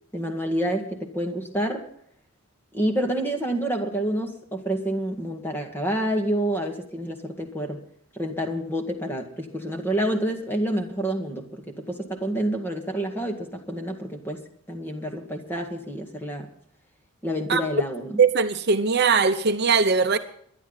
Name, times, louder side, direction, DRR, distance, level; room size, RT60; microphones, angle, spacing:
voice 1, 0.1-1.8 2.7-7.8 8.2-16.5 17.2-18.2, right 1 dB, 10° left, 2.0 m, -28 dB
voice 2, 18.2-20.2, right 5 dB, 50° right, 0.8 m, -20 dB
23.0 x 11.0 x 4.1 m
head